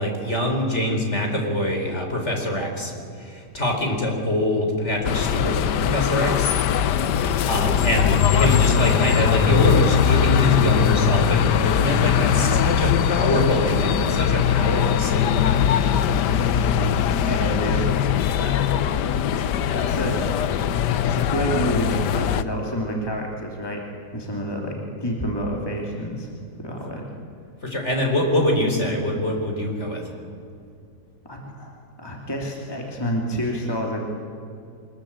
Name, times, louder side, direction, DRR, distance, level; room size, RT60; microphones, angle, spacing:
voice 1, 0.0-2.9 3.2-6.5 7.4-15.5 27.6-30.0, left 1 dB, 40° left, 2 dB, 4.6 m, -24 dB
sound 1, 5.0-22.4, left 8 dB, 85° left, 1.4 m, -21 dB
voice 2, 17.1-18.6 19.7-20.4 21.0-23.8 24.1-26.3 26.6-27.0 29.8-29.9 31.3-34.1, equal, 15° left, 0 dB, 2.8 m, -29 dB
24.0 x 21.5 x 8.8 m, 2.4 s
omnidirectional pair, 1.8 m